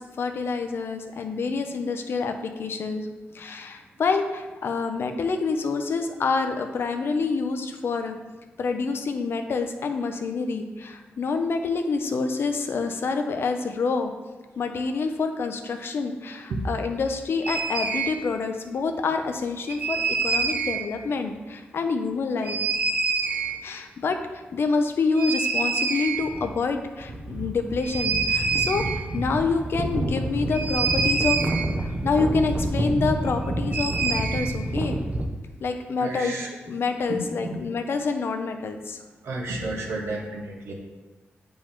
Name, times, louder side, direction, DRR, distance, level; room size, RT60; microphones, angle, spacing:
voice 1, 0.0-3.1 3.3-8.2 8.6-14.1 14.6-22.6 23.6-28.9 29.1-31.4 31.8-35.0 35.6-36.4 36.7-39.0, left 4 dB, 60° left, 6 dB, 0.7 m, -27 dB
sound 1, 17.4-18.1 19.7-20.8 22.4-23.6 25.2-26.5 26.7-26.8 27.0-35.3, right 3 dB, 30° right, 0.8 m, -26 dB
voice 2, 36.0-36.5 37.1-37.4 39.2-40.7, right 2 dB, 80° right, 0 dB, 1.3 m, -31 dB
8.6 x 5.2 x 3.8 m, 1.2 s
wide cardioid pair, 115°, 4 cm